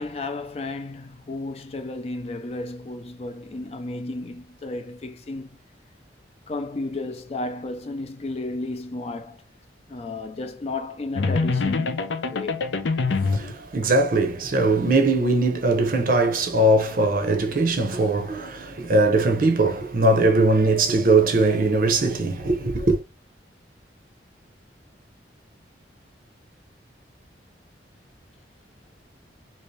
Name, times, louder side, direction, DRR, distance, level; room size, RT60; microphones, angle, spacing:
voice 1, 0.0-5.6 6.5-9.4 9.9-12.0 12.3-12.6, left 2 dB, 35° left, 0.4 m, -33 dB
sound 1, 11.2-13.5, left 4 dB, 85° left, 0.6 m, -24 dB
voice 2, 13.3-23.0, right 2 dB, 50° right, 0.7 m, -20 dB
2.9 x 2.7 x 3.2 m
head